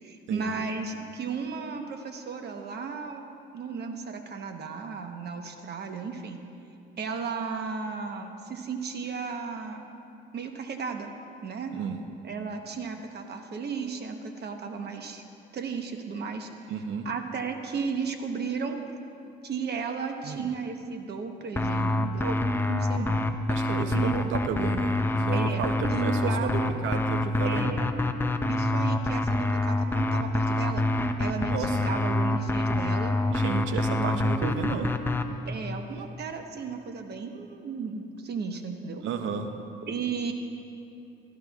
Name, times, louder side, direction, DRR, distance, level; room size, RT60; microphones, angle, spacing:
voice 1, 0.0-3.2 3.5-6.4 7.0-9.9 10.3-11.1 11.4-11.7 12.2-15.2 15.5-16.5 17.0-18.8 19.4-23.3 23.9-24.2 25.3-26.7 27.4-27.9 28.5-30.8 31.2-33.2 33.9-34.4 35.4-39.0 39.9-40.3, right 5 dB, 55° right, 5 dB, 1.0 m, -34 dB
voice 2, 16.7-17.1 20.2-20.5 23.5-25.0 25.3-27.8 31.4-31.8 33.3-35.0 39.0-39.5, right 6 dB, 80° right, 6 dB, 0.7 m, -32 dB
sound 1, 21.6-35.3, left 2 dB, 10° left, 0.5 m, -26 dB
16.0 x 12.5 x 2.4 m, 2.7 s
cardioid pair, 90°, 20 cm